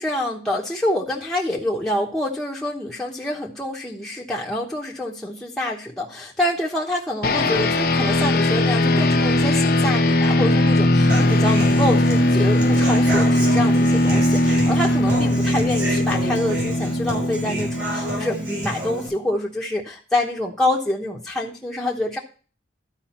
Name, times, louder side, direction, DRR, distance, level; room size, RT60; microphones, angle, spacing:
voice 1, 0.0-22.2, left 1 dB, 5° left, -3 dB, 1.0 m, -26 dB
sound 1, 7.2-18.9, left 1 dB, 55° left, 0.8 m, -19 dB
Human voice / Acoustic guitar, 11.1-19.1, right 1 dB, 65° right, 3.4 m, -30 dB
12.0 x 4.9 x 4.3 m, 0.39 s
head